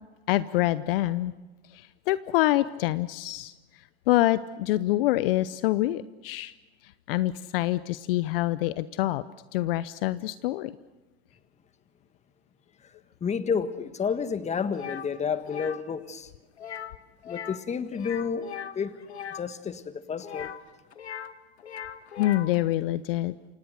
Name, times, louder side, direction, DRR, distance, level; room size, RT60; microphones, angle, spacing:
voice 1, 0.3-1.3 1.7-3.5 4.1-6.5 7.1-9.2 9.5-10.7 22.2-23.4, left 16 dB, 60° left, 16 dB, 0.8 m, -26 dB
voice 2, 13.2-16.3 17.2-18.5 18.7-19.0 19.3-20.5, left 6 dB, 20° left, 11 dB, 1.6 m, -30 dB
sound 1, 14.7-15.1 15.4-15.8 16.6-17.0 17.2-17.6 17.9-19.4 20.2-21.3 21.6-22.6, left 9 dB, 85° left, 1.3 m, -39 dB
28.5 x 26.0 x 6.6 m, 1.2 s
hypercardioid pair, 95°, 32 cm